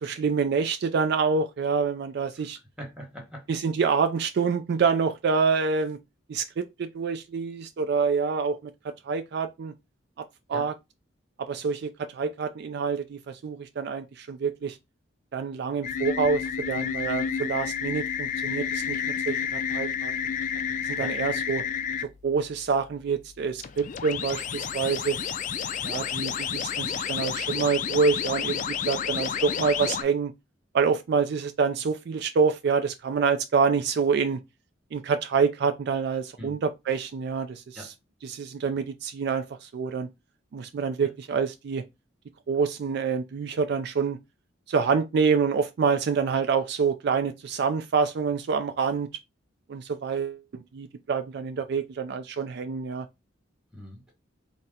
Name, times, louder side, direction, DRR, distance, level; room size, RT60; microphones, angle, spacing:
voice 1, 0.0-2.6 3.5-6.0 6.3-8.6 9.0-9.7 10.5-10.7 11.4-14.8 15.3-20.1 20.8-21.6 22.2-25.2 25.8-30.3 30.7-34.4 34.9-37.9 38.2-40.1 40.5-41.8 42.5-44.2 44.7-49.1 49.7-53.1, right 5 dB, 55° right, 0.3 m, -27 dB
voice 2, 2.8-3.4 10.5-10.7 21.0-21.1 36.4-36.6 37.7-37.9 41.0-41.1 53.7-54.1, equal, 5° right, 1.1 m, -41 dB
sound 1, 15.8-22.0 23.6-30.0, left 7 dB, 40° left, 0.3 m, -30 dB
4.1 x 2.1 x 3.5 m
head